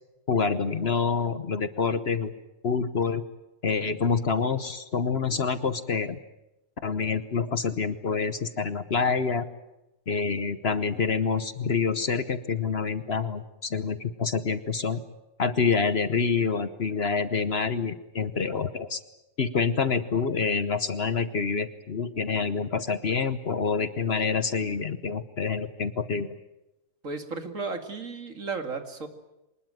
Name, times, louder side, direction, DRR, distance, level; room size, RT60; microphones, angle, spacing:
voice 1, 0.3-2.3 2.6-3.2 3.6-6.2 6.8-9.4 10.1-15.0 15.4-19.0 19.4-26.3, left 5 dB, 50° left, 13 dB, 1.2 m, -27 dB
voice 2, 27.0-29.1, right 4 dB, 65° right, 6 dB, 2.7 m, -34 dB
25.0 x 20.0 x 9.2 m, 0.95 s
omnidirectional pair, 1.5 m